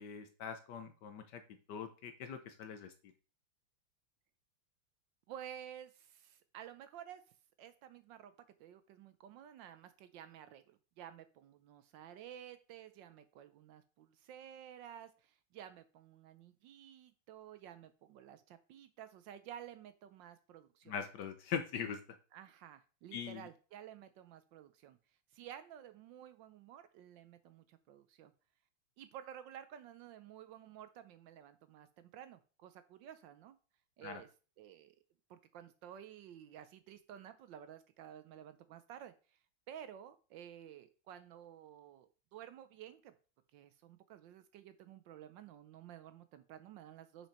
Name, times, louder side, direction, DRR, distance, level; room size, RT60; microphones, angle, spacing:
voice 1, 0.0-1.4 1.7-2.9 20.9-22.0 23.1-23.5 34.0-34.2, left 7 dB, 65° left, 8 dB, 1.2 m, -42 dB
voice 2, 5.3-7.2 7.6-8.3 8.6-21.0 22.3-25.0 25.3-28.3 29.0-33.6 34.0-34.3 34.6-35.0 35.3-39.4 39.7-43.2 43.5-47.3, right 10 dB, 75° right, 11 dB, 1.2 m, -53 dB
6.0 x 5.1 x 4.2 m, 0.35 s
omnidirectional pair, 2.3 m